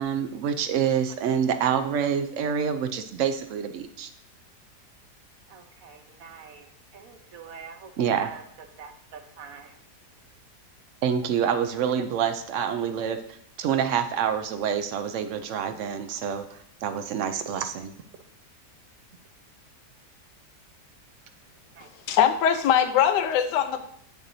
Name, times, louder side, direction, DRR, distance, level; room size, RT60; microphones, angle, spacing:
voice 1, 0.0-4.1 8.0-8.3 11.0-13.2 13.6-18.0, right 8 dB, 80° right, 8 dB, 0.6 m, -27 dB
voice 2, 5.5-8.4 8.8-9.8 12.2-12.3 21.7-22.2, right 6 dB, 60° right, 6 dB, 1.1 m, -45 dB
voice 3, 22.1-23.8, left 9 dB, 80° left, 10 dB, 1.2 m, -21 dB
8.0 x 6.9 x 2.7 m, 0.67 s
omnidirectional pair, 1.8 m